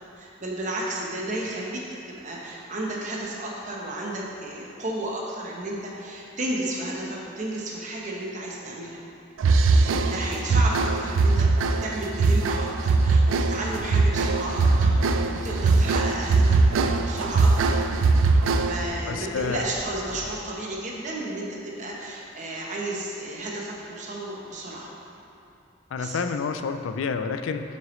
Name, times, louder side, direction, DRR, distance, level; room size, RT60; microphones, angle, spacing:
voice 1, 0.2-1.8 2.1-9.0 9.7-16.6 17.0-18.0 18.6-24.9 26.0-26.2, right 1 dB, 40° right, -3 dB, 1.0 m, -33 dB
sound 1, 9.4-19.0, right 3 dB, 90° right, 0.4 m, -21 dB
sound 2, 13.8-20.3, equal, 5° right, 0.5 m, -42 dB
voice 2, 19.1-19.7 25.9-27.8, left 5 dB, 80° left, 8 dB, 0.4 m, -29 dB
7.4 x 5.8 x 3.1 m, 2.7 s
head